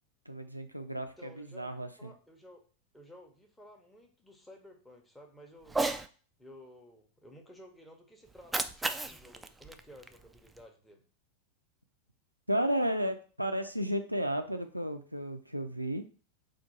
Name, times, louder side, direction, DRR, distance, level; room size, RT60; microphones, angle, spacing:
voice 1, 0.3-2.1 12.5-16.0, equal, 90° right, 7 dB, 0.4 m, -33 dB
voice 2, 1.2-2.6 2.9-5.8 6.4-11.0, equal, 10° left, 2 dB, 0.9 m, -54 dB
Cat, 5.6-6.1 8.3-10.6, right 2 dB, 10° right, 0.3 m, -35 dB
4.4 x 2.5 x 4.2 m, 0.39 s
figure-of-eight pair, 90°, 0 cm